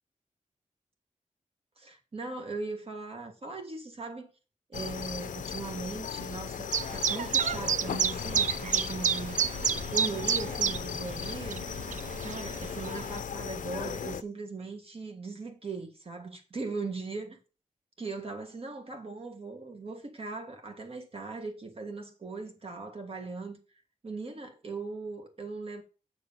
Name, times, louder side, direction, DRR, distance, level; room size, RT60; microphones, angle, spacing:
voice 1, 1.8-4.3 4.7-9.4 9.9-11.7 12.2-17.4 18.0-23.6 24.0-25.8, right 3 dB, 45° right, 1.7 m, -39 dB
sound 1, 4.7-14.2, left 7 dB, 80° left, 0.5 m, -37 dB
Chirp tweet, 6.7-13.2, right 7 dB, 70° right, 0.4 m, -30 dB
7.5 x 6.3 x 5.3 m
wide cardioid pair, 140°, 13 cm